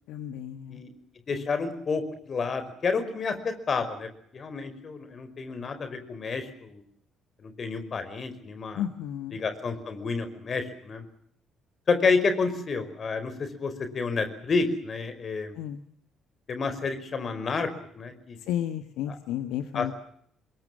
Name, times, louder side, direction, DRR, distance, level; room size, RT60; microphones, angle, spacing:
voice 1, 0.1-0.8 1.3-1.4 8.7-9.4 15.5-15.8 18.4-19.9, left 10 dB, 65° left, 10 dB, 1.5 m, -33 dB
voice 2, 1.3-6.8 7.4-8.8 9.3-11.0 11.9-15.5 16.5-17.7 17.9-18.4 19.1-19.2 19.7-19.9, left 4 dB, 40° left, 9 dB, 5.1 m, -29 dB
27.0 x 22.0 x 7.6 m, 0.68 s
figure-of-eight pair, 45°, 0 cm